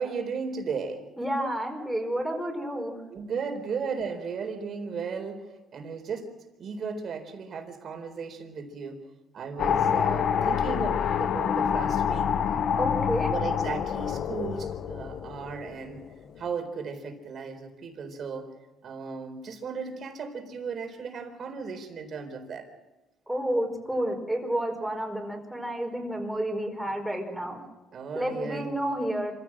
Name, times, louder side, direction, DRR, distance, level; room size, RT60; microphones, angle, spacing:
voice 1, 0.0-1.0 3.1-5.5 5.7-6.3 6.6-9.0 9.3-12.4 13.3-16.0 16.4-18.5 18.8-22.7 27.9-28.8, right 5 dB, 50° right, 5 dB, 4.1 m, -35 dB
voice 2, 1.2-2.9 12.7-13.3 23.3-27.6 28.1-29.3, right 1 dB, 5° right, 1 dB, 4.9 m, -30 dB
sound 1, 9.6-16.0, left 7 dB, 60° left, 1.1 m, -27 dB
26.0 x 15.5 x 7.5 m, 1.1 s
cardioid pair, 105°, 0 cm